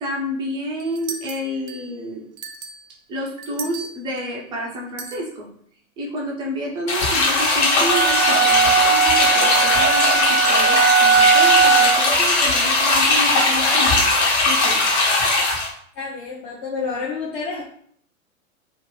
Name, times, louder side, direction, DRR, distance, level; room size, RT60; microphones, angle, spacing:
voice 1, 0.0-2.3 3.1-5.5 6.0-14.1 14.5-14.8, equal, 10° right, -3 dB, 0.4 m, -29 dB
sound 1, 0.8-2.0 2.4-4.3 5.0-5.2, right 5 dB, 80° right, 0.6 m, -36 dB
sound 2, 6.9-15.7, left 2 dB, 55° left, 1.2 m, -18 dB
sound 3, 7.8-12.1, right 6 dB, 80° left, 1.1 m, -18 dB
voice 2, 16.0-17.6, left 4 dB, 35° left, -5 dB, 0.6 m, -29 dB
2.6 x 2.4 x 3.1 m, 0.62 s
hypercardioid pair, 110°, 41 cm